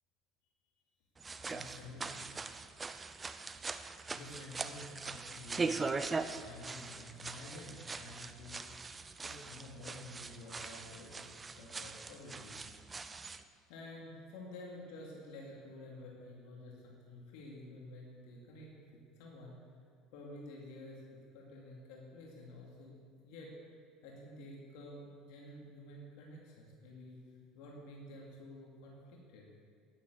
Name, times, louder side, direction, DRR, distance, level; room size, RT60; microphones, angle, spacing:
sound 1, 1.2-13.4, right 4 dB, 20° right, 0.6 m, -41 dB
voice 1, 1.4-2.3 3.6-5.8 6.2-8.6 9.2-11.3 11.6-12.6 13.7-18.7 19.2-19.6 20.1-21.0 21.3-23.6 24.0-29.5, left 1 dB, 75° left, -2 dB, 2.7 m, -51 dB
10.5 x 10.0 x 6.9 m, 2.3 s
supercardioid pair, 110°, 0 cm